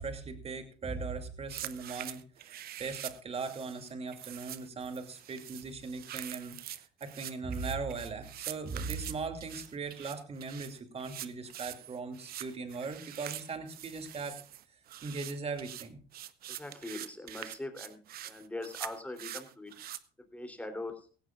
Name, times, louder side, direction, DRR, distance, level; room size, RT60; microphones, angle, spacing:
voice 1, 0.0-6.6 7.0-14.4 15.0-16.0, right 4 dB, 35° right, 8 dB, 2.6 m, -39 dB
sound 1, 1.5-20.0, right 12 dB, 65° right, 0.9 m, -44 dB
voice 2, 16.5-18.0 18.2-19.7 20.3-20.9, left 2 dB, 10° left, 6 dB, 3.2 m, -41 dB
17.0 x 16.5 x 2.4 m, 0.38 s
cardioid pair, 110°, 17 cm